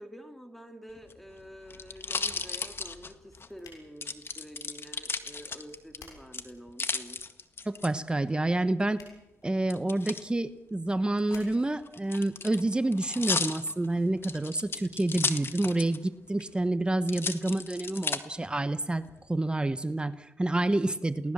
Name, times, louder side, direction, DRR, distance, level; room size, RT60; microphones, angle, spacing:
voice 1, 0.0-7.2, equal, 5° left, 5 dB, 2.4 m, -48 dB
sound 1, 1.0-3.5 4.0-6.0 6.3-7.9 9.7-10.2 11.2-16.1 16.4-16.5 17.1-18.2 18.8-19.3, left 4 dB, 40° left, 1.8 m, -34 dB
sound 2, 2.8-12.8, left 4 dB, 80° left, 6.8 m, -59 dB
voice 2, 7.7-9.0 9.4-19.0 19.3-21.3, right 2 dB, 15° right, 12 dB, 1.0 m, -28 dB
29.0 x 19.0 x 7.4 m, 1.0 s
cardioid pair, 75°, 6 cm